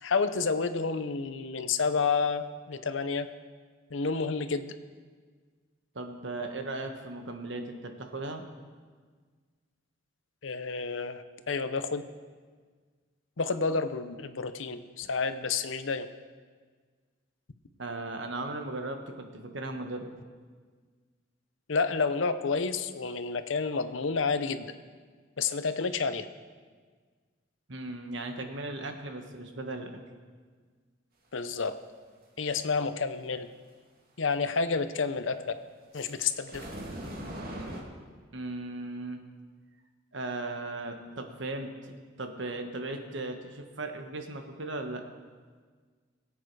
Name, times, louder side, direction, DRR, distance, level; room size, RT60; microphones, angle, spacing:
voice 1, 0.0-3.3 3.9-4.8 10.4-12.0 13.4-16.1 21.7-24.7 25.4-26.3 31.3-31.7 32.4-33.5 34.2-35.5 35.9-36.6, left 4 dB, 80° left, 11 dB, 0.8 m, -30 dB
voice 2, 5.9-8.4 17.8-20.1 27.7-29.9 38.3-39.2 40.1-45.0, right 2 dB, 70° right, 5 dB, 1.4 m, -37 dB
sound 1, 35.9-37.8, right 1 dB, 50° right, 2.5 m, -39 dB
21.0 x 8.6 x 4.8 m, 1.6 s
head